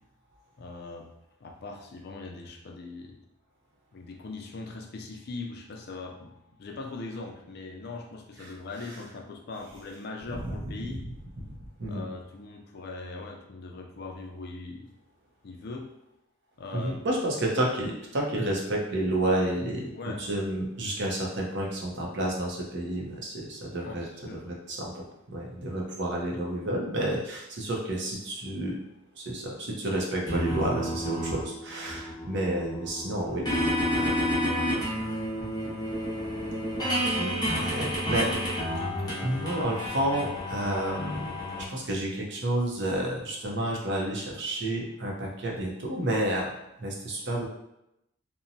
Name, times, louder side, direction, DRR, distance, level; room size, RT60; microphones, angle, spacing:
voice 1, 0.6-1.1 1.4-3.2 3.9-11.0 11.9-14.9 15.4-15.9 16.6-16.9 20.0-20.2 23.8-24.4, left 3 dB, 55° left, 2 dB, 0.4 m, -40 dB
voice 2, 16.7-24.1 24.4-28.8 29.2-33.5 34.0-34.3 37.2-38.3 39.2-41.4 41.7-46.5 46.8-47.5, right 1 dB, 60° right, -1 dB, 0.6 m, -30 dB
sound 1, 30.3-41.6, equal, 20° left, 0.7 m, -30 dB
2.8 x 2.1 x 2.6 m, 0.84 s
head